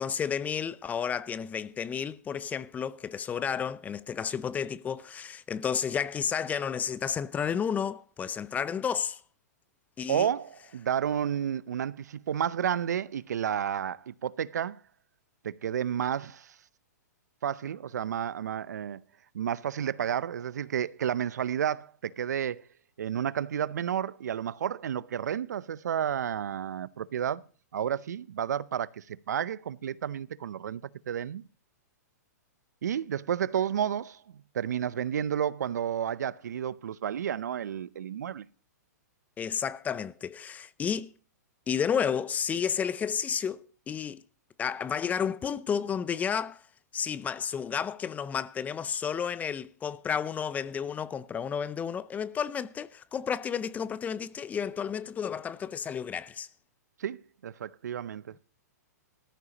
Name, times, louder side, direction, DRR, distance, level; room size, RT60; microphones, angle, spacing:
voice 1, 0.0-9.2 10.0-10.3 39.4-41.1 41.7-44.2 44.6-46.6 46.9-56.5, left 7 dB, 15° left, 0.5 m, -31 dB
voice 2, 10.1-14.8 15.4-16.6 17.4-19.0 19.3-22.7 23.0-27.4 27.7-31.5 32.8-38.5 57.0-58.4, right 9 dB, 70° right, 0.6 m, -31 dB
19.0 x 13.5 x 2.9 m
hypercardioid pair, 120°, 9 cm